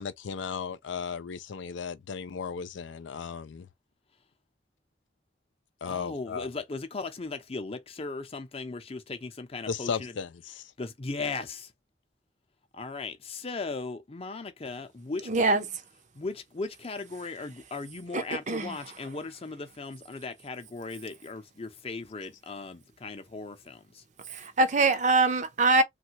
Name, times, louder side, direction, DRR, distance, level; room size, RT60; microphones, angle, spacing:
voice 1, 0.0-3.7 5.8-6.5 9.7-10.7, left 6 dB, 80° left, 0.4 m, -35 dB
voice 2, 5.8-10.1 10.8-11.7 12.7-15.7 16.1-24.0, left 3 dB, 30° left, 0.6 m, -37 dB
voice 3, 15.3-15.6 18.1-18.7 24.3-25.8, right 3 dB, 40° right, 0.6 m, -24 dB
3.2 x 2.4 x 2.8 m
head